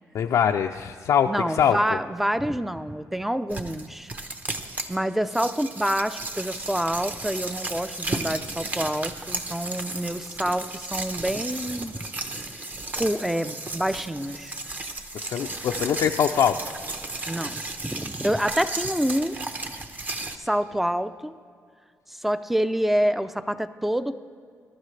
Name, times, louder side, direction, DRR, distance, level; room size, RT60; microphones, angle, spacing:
voice 1, 0.1-2.0 15.1-16.7, left 8 dB, 70° left, 3 dB, 0.4 m, -23 dB
voice 2, 1.3-4.1 4.9-12.1 13.0-14.6 17.3-19.4 20.4-21.3 22.1-24.2, equal, 5° right, 13 dB, 0.4 m, -27 dB
sound 1, 3.5-5.0 5.3-20.4, right 2 dB, 30° right, 0.8 m, -34 dB
21.0 x 12.5 x 3.3 m, 2.2 s
cardioid pair, 115°, 6 cm